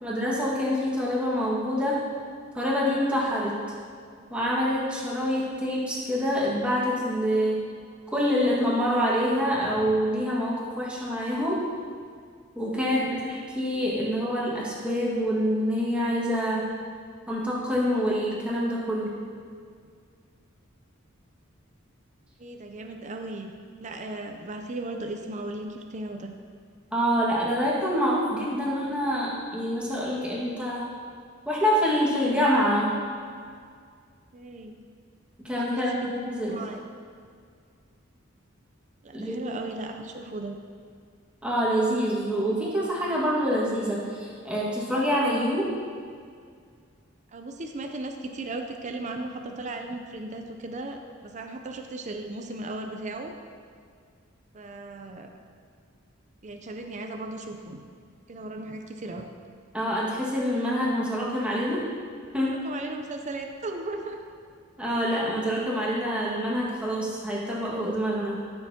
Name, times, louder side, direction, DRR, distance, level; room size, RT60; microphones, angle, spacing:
voice 1, 0.0-2.0 2.6-3.6 4.3-7.6 8.1-11.6 12.6-16.7 17.3-19.1 26.9-30.9 31.5-33.0 35.4-36.6 39.1-39.4 41.4-45.7 59.7-61.8 62.3-62.6 64.8-68.4, equal, 5° right, -6 dB, 1.7 m, -26 dB
voice 2, 12.8-13.2 22.4-23.5 23.8-26.4 34.3-34.8 35.7-35.8 36.5-36.8 39.0-40.6 47.3-53.3 54.5-55.3 56.4-57.8 58.3-59.3 62.4-64.2, right 2 dB, 35° right, 4 dB, 0.5 m, -36 dB
14.0 x 6.6 x 2.8 m, 2.1 s
head